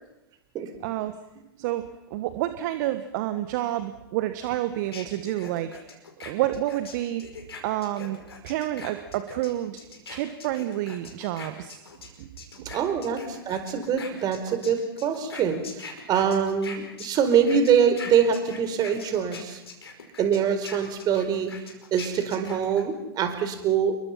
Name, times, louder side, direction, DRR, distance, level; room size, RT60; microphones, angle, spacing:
voice 1, 0.8-1.1 1.6-1.8 2.1-5.7 6.2-7.2 7.6-8.2 8.4-9.8 10.1-11.8 12.2-12.3 12.6-12.7, right 14 dB, 50° right, 10 dB, 1.4 m, -29 dB
sound 1, 4.9-12.1 12.4-22.8, left 4 dB, 75° left, 5.2 m, -42 dB
voice 2, 12.6-15.6 16.1-19.6 20.2-21.5 21.9-24.0, right 7 dB, 30° right, 7 dB, 4.2 m, -24 dB
29.0 x 23.0 x 5.8 m, 0.92 s
figure-of-eight pair, 100°, 13 cm